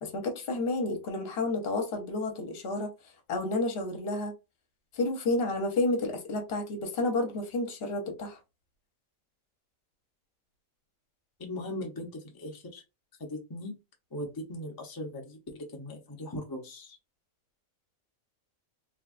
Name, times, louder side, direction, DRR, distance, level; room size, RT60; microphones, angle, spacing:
voice 1, 0.0-2.9 3.3-4.3 4.9-8.4, left 2 dB, 50° left, 1.0 m, -30 dB
voice 2, 11.4-12.8 13.2-13.8 14.1-17.0, left 1 dB, 25° left, 0.5 m, -39 dB
3.2 x 2.3 x 2.4 m
omnidirectional pair, 1.4 m